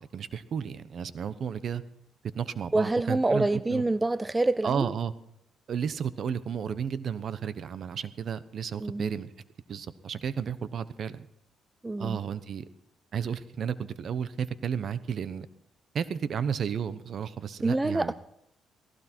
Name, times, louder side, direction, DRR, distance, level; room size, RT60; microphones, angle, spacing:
voice 1, 0.0-1.8 2.3-3.8 4.6-5.1 5.7-9.3 9.7-11.3 12.0-12.7 13.1-15.5 15.9-18.1, right 7 dB, 55° right, 14 dB, 1.0 m, -32 dB
voice 2, 2.7-4.9 8.8-9.1 11.8-12.2 17.6-18.1, right 2 dB, 15° right, 16 dB, 0.5 m, -26 dB
18.0 x 16.5 x 4.5 m, 0.79 s
cardioid pair, 90°, 0 cm